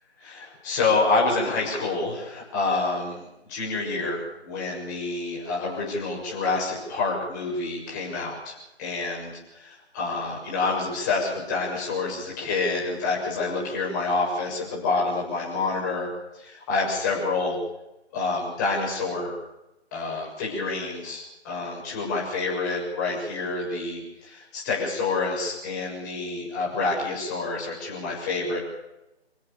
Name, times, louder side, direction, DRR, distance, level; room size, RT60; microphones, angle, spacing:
voice 1, 0.2-16.1 16.3-17.6 18.1-19.3 19.9-28.6, left 3 dB, 15° left, -3 dB, 6.9 m, -28 dB
27.5 x 16.0 x 7.1 m, 0.93 s
figure-of-eight pair, 155°, 33 cm